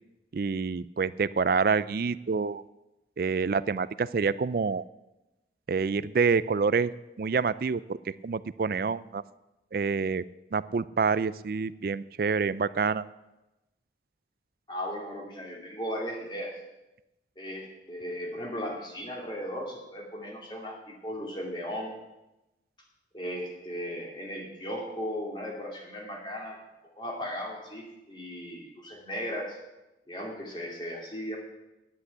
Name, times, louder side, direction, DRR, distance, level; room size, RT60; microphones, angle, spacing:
voice 1, 0.3-2.6 3.2-4.8 5.7-6.9 7.2-8.0 8.2-9.2 9.7-10.2 10.5-13.1, right 5 dB, 55° right, 17 dB, 0.4 m, -27 dB
voice 2, 14.7-16.5 17.4-21.9 23.1-26.6 27.0-29.6 30.1-31.4, equal, 25° left, -1 dB, 2.5 m, -36 dB
10.5 x 8.3 x 8.2 m, 0.99 s
head